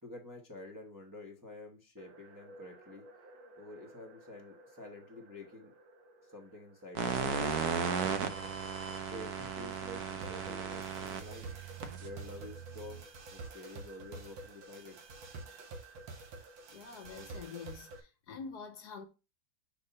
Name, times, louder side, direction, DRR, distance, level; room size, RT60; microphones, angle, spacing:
voice 1, 0.0-3.1 3.6-5.8 6.2-8.1 9.1-11.5 12.0-15.0, left 2 dB, 15° right, 0.8 m, -49 dB
sound 1, 2.0-18.0, right 3 dB, 85° right, 1.9 m, -51 dB
sound 2, 7.0-13.0, right 6 dB, 60° right, 1.2 m, -36 dB
voice 2, 16.7-17.9 18.3-19.1, left 5 dB, 65° left, 1.4 m, -45 dB
5.3 x 4.1 x 5.4 m
omnidirectional pair, 2.0 m